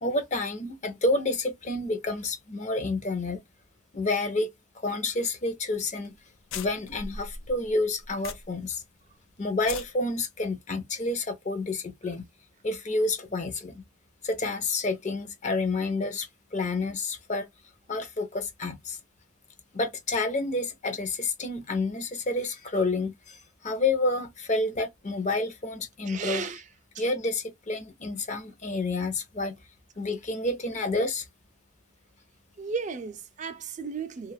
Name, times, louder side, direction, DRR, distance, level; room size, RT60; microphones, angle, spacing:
voice 1, 0.0-3.4 3.9-6.1 6.5-8.8 9.4-12.2 12.6-13.8 14.2-17.4 17.9-19.0 19.7-23.4 23.6-26.4 27.0-29.6 30.0-31.2, left 2 dB, 35° left, 0.6 m, -29 dB
sound 1, 5.7-5.9 6.1-6.2 6.5-8.7 9.0-9.1 9.5-9.9, left 5 dB, 80° left, 0.5 m, -39 dB
voice 2, 26.1-26.6 27.0-27.1 32.6-34.3, right 5 dB, 35° right, 0.4 m, -34 dB
2.4 x 2.4 x 3.2 m
head